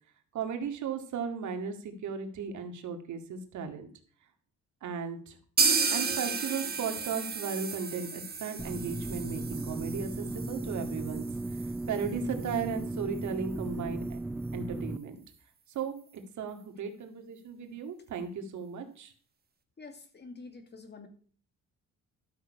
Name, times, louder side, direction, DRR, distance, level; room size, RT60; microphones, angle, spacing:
voice 1, 0.3-3.9 4.8-5.4 5.9-11.3 11.9-14.2 14.5-15.2 15.7-16.0 16.4-19.1, right 6 dB, 70° right, 5 dB, 2.1 m, -36 dB
sound 1, 5.6-13.3 13.6-13.7 14.0-14.1 14.5-14.6, right 5 dB, 30° right, 1.7 m, -33 dB
sound 2, 8.6-15.0, right 2 dB, 5° right, 0.5 m, -36 dB
voice 2, 19.8-21.1, left 3 dB, 35° left, 7 dB, 2.3 m, -47 dB
12.5 x 6.3 x 5.4 m, 0.44 s
cardioid pair, 90°, 30 cm